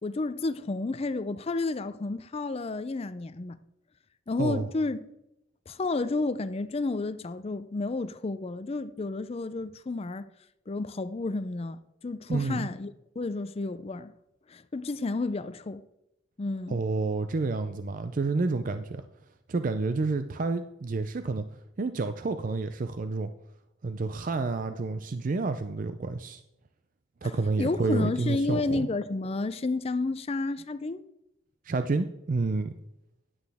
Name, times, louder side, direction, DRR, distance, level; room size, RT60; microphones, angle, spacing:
voice 1, 0.0-3.6 4.3-5.1 5.7-10.3 10.7-11.8 12.0-14.1 14.5-15.8 16.4-16.8 27.6-31.0, left 3 dB, 30° left, 0.4 m, -31 dB
voice 2, 12.3-12.7 16.7-19.0 19.5-21.4 21.8-23.3 23.8-26.4 27.2-28.9 31.6-32.7, right 3 dB, 40° right, 0.4 m, -29 dB
11.0 x 9.0 x 3.5 m
head